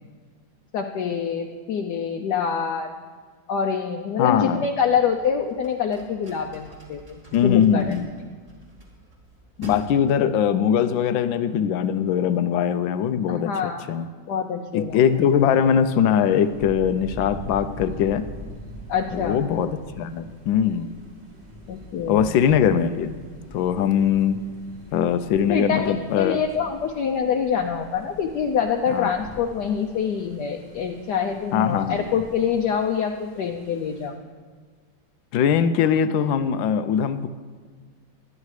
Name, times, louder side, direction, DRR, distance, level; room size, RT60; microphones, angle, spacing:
voice 1, 0.7-2.9 3.5-7.9 13.3-13.9 14.3-15.0 18.9-19.4 21.7-22.4 25.5-34.2, left 7 dB, 70° left, 3 dB, 1.2 m, -25 dB
voice 2, 4.2-4.6 7.3-8.1 9.6-14.1 14.7-18.2 19.1-20.9 22.1-23.1 23.5-24.4 24.9-26.4 28.9-29.1 31.5-32.0 35.3-37.3, left 8 dB, 90° left, 11 dB, 1.4 m, -21 dB
sound 1, 4.8-9.8, left 1 dB, 30° right, 2.6 m, -46 dB
Thunder, 14.9-34.1, left 1 dB, 55° right, 2.6 m, -43 dB
23.5 x 9.8 x 3.2 m, 1.5 s
omnidirectional pair, 2.1 m